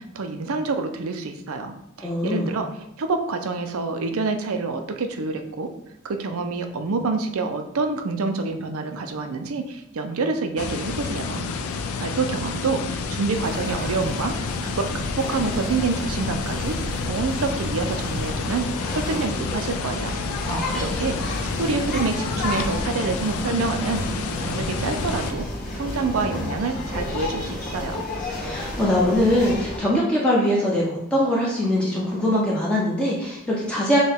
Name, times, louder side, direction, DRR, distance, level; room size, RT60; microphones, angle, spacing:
voice 1, 0.0-2.7 3.0-5.7 6.0-11.5 12.0-18.7 18.9-20.2 20.7-21.3 21.6-24.1 24.4-25.5 25.7-28.0, right 4 dB, 70° right, 6 dB, 0.5 m, -27 dB
voice 2, 2.0-2.5 20.4-21.0 28.4-34.0, left 1 dB, 5° left, -5 dB, 0.6 m, -22 dB
sound 1, 10.6-25.3, left 5 dB, 70° left, 0.4 m, -30 dB
sound 2, 13.3-29.8, left 1 dB, 35° left, 1.6 m, -31 dB
6.4 x 2.3 x 3.4 m, 0.84 s
head